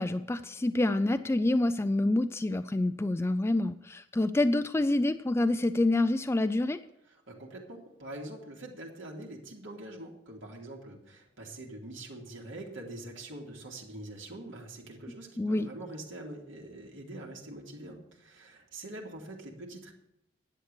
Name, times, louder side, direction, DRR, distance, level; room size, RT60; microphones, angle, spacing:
voice 1, 0.0-6.8 15.4-15.7, left 2 dB, 15° left, 11 dB, 0.3 m, -27 dB
voice 2, 7.3-19.9, right 1 dB, 80° right, -1 dB, 2.3 m, -44 dB
10.5 x 8.0 x 6.7 m, 0.78 s
head